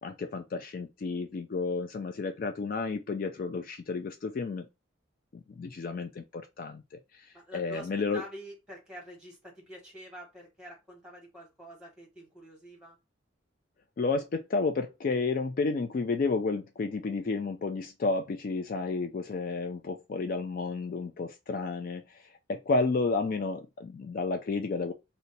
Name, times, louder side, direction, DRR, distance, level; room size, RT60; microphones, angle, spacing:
voice 1, 0.0-4.7 5.3-8.2 14.0-24.9, left 3 dB, 45° left, 0.3 m, -31 dB
voice 2, 7.3-13.0, equal, 5° right, 1.3 m, -47 dB
2.7 x 2.2 x 4.0 m
head